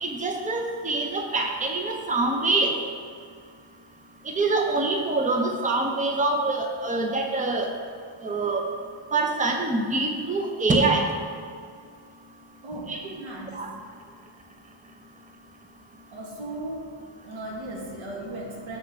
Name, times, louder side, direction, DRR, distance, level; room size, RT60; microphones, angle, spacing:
voice 1, 0.0-2.7 4.4-7.7 8.2-8.6 9.1-11.0 12.9-13.0 13.5-13.7, right 3 dB, 15° right, 2 dB, 0.7 m, -25 dB
voice 2, 12.6-13.7 16.1-16.9 17.2-18.8, right 1 dB, 90° right, -2 dB, 1.8 m, -36 dB
6.4 x 4.4 x 6.5 m, 2.2 s
wide cardioid pair, 115°, 46 cm